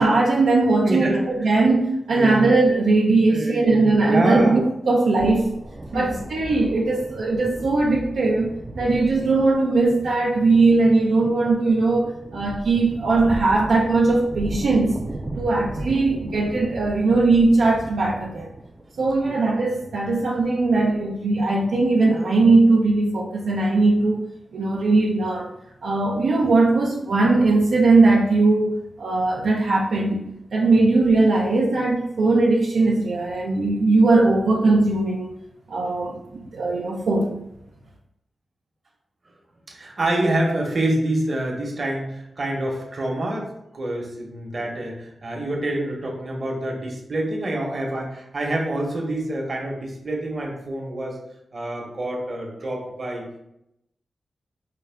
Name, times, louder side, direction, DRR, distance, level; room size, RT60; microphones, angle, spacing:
voice 1, 0.0-5.5 5.9-14.9 15.4-18.5 19.0-25.5 25.8-30.3 30.5-35.3 35.7-37.3, right 3 dB, 85° right, -3 dB, 0.5 m, -19 dB
voice 2, 0.8-1.3 2.1-2.5 3.3-4.6 5.9-6.2 8.7-8.9 15.3-15.5 18.9-19.3 39.7-51.2 51.5-53.4, right 1 dB, 50° right, 0 dB, 1.0 m, -27 dB
sound 1, 5.2-21.4, right 1 dB, 30° right, 0.4 m, -36 dB
4.7 x 2.2 x 3.4 m, 0.81 s
cardioid pair, 55°, 0 cm